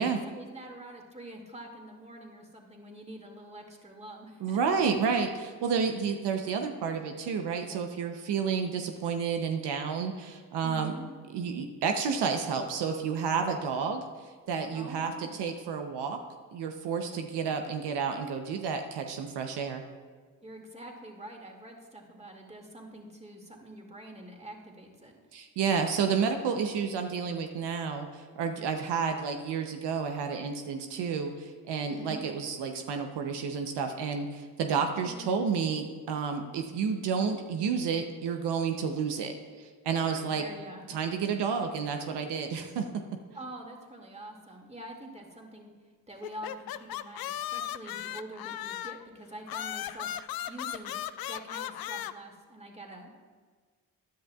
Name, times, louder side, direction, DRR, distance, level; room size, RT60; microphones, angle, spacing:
voice 1, 0.0-4.6 10.6-11.1 14.7-15.4 20.4-25.1 31.9-32.3 35.1-35.4 40.0-40.9 43.3-45.7 46.1-50.1 50.5-51.0 51.3-53.1, right 1 dB, 15° right, 1 dB, 2.2 m, -45 dB
voice 2, 4.4-10.9 11.3-16.2 16.5-19.8 25.3-39.3 39.6-40.4 40.9-42.8, right 6 dB, 85° right, 4 dB, 0.8 m, -30 dB
sound 1, 46.2-49.1 49.5-52.1, left 12 dB, 65° left, 0.5 m, -36 dB
15.0 x 10.5 x 2.4 m, 1.5 s
supercardioid pair, 45°, 40 cm